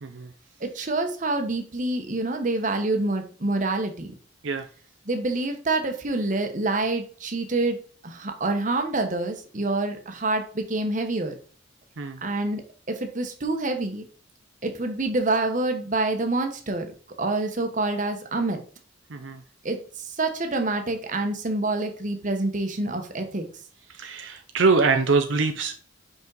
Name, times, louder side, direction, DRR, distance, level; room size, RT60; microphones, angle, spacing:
voice 1, 0.0-0.3 4.4-4.7 12.0-12.2 19.1-19.4 23.9-25.7, right 4 dB, 75° right, 6 dB, 0.6 m, -24 dB
voice 2, 0.6-4.1 5.1-7.8 8.0-11.3 12.2-12.6 12.9-14.0 14.6-16.9 17.2-18.6 19.6-23.4, right 2 dB, 40° right, 5 dB, 1.0 m, -27 dB
5.4 x 5.4 x 3.9 m, 0.41 s
head